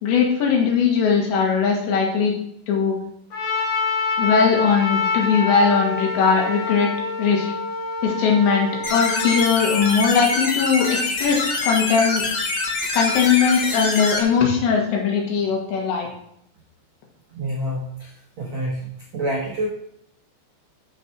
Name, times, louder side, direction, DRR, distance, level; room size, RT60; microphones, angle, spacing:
voice 1, 0.0-2.4 2.7-3.0 4.2-6.9 7.2-7.5 8.0-12.3 12.9-16.1, left 6 dB, 65° left, 0 dB, 3.7 m, -20 dB
Trumpet, 3.3-9.9, left 3 dB, 40° left, 5.8 m, -26 dB
sound 1, 8.8-14.2, left 3 dB, 85° left, 1.4 m, -25 dB
voice 2, 17.4-18.1 18.4-19.7, right 1 dB, 85° right, -2 dB, 1.5 m, -27 dB
12.5 x 6.1 x 4.5 m, 0.72 s
omnidirectional pair, 5.8 m